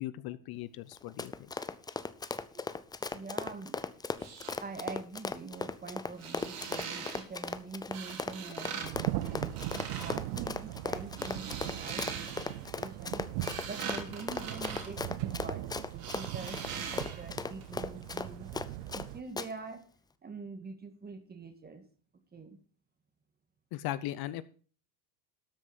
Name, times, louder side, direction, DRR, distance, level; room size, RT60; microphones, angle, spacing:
voice 1, 0.0-1.5 23.7-24.4, left 14 dB, 55° left, 15 dB, 0.7 m, -38 dB
Run, 0.9-19.1 19.4-19.5, left 4 dB, 10° left, 0.4 m, -37 dB
voice 2, 3.1-3.8 4.6-13.3 13.6-15.6 15.9-18.5 18.9-19.8 20.2-21.8 22.3-22.6, right 4 dB, 20° right, 8 dB, 1.9 m, -45 dB
sound 1, 4.1-4.5 6.1-7.2 7.9-8.9 9.2-10.2 11.0-12.6 13.1-15.6 16.0-17.3 17.6-17.7, right 6 dB, 50° right, 3.4 m, -42 dB
sound 2, 8.8-19.2, right 16 dB, 75° right, 0.8 m, -40 dB
13.0 x 6.3 x 6.0 m, 0.41 s
cardioid pair, 130°, 45 cm